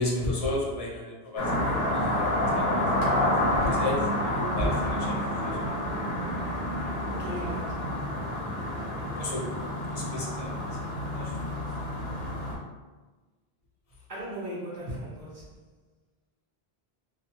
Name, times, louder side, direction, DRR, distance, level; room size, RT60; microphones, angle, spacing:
voice 1, 0.0-5.8 9.1-11.6, left 1 dB, 45° left, -4 dB, 0.6 m, -34 dB
sound 1, 1.4-12.5, left 1 dB, 70° left, 1.0 m, -29 dB
voice 2, 7.1-7.9 14.1-15.5, equal, 50° right, -7 dB, 0.7 m, -37 dB
2.4 x 2.1 x 2.8 m, 1.3 s
omnidirectional pair, 1.1 m